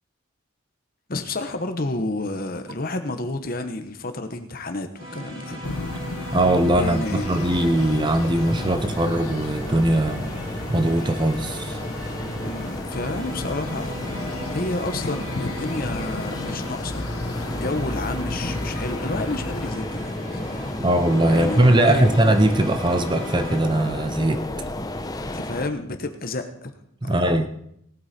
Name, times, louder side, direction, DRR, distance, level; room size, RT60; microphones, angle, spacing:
voice 1, 1.1-5.6 6.3-6.4 6.8-7.3 12.4-17.1 17.4-20.8 21.3-22.2 25.3-26.7 27.0-27.5, left 2 dB, 40° left, 7 dB, 1.1 m, -30 dB
sound 1, 5.0-23.6, equal, 65° right, 3.2 m, -37 dB
sound 2, 5.6-19.7, left 3 dB, 90° left, 0.8 m, -35 dB
voice 2, 6.3-10.3 10.7-11.8 20.8-24.4 27.0-27.5, right 1 dB, 20° right, 8 dB, 0.6 m, -20 dB
sound 3, 7.3-25.7, left 1 dB, 15° left, 0.7 m, -32 dB
18.0 x 8.7 x 4.3 m, 0.73 s
head